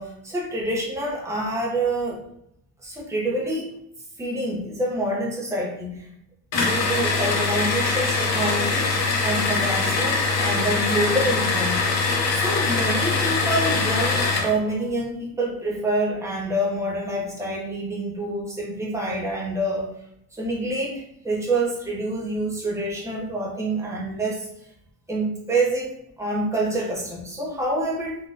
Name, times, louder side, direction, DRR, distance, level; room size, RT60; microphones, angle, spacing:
voice 1, 0.0-2.2 2.8-3.7 4.2-6.1 6.6-8.9 9.2-11.9 12.3-19.9 20.3-24.5 25.1-28.2, right 1 dB, 10° right, -3 dB, 0.5 m, -27 dB
sound 1, 6.5-14.5, left 3 dB, 45° left, 0.6 m, -23 dB
3.5 x 2.2 x 2.5 m, 0.75 s
cardioid pair, 170°, 37 cm